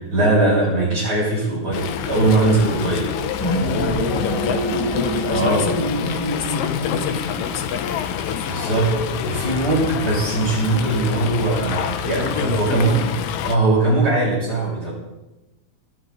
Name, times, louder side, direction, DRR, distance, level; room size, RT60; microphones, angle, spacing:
voice 1, 0.0-3.1 5.3-5.7 8.5-13.0 13.4-14.9, right 2 dB, 30° right, -5 dB, 7.1 m, -20 dB
Fowl, 1.7-13.6, left 9 dB, 85° left, 2.6 m, -27 dB
sound 1, 3.2-7.8, left 1 dB, 15° left, 4.7 m, -25 dB
voice 2, 4.2-4.7 4.9-8.5 12.0-12.9, left 7 dB, 70° left, 7 dB, 1.5 m, -30 dB
24.0 x 11.5 x 4.0 m, 1.0 s
omnidirectional pair, 3.8 m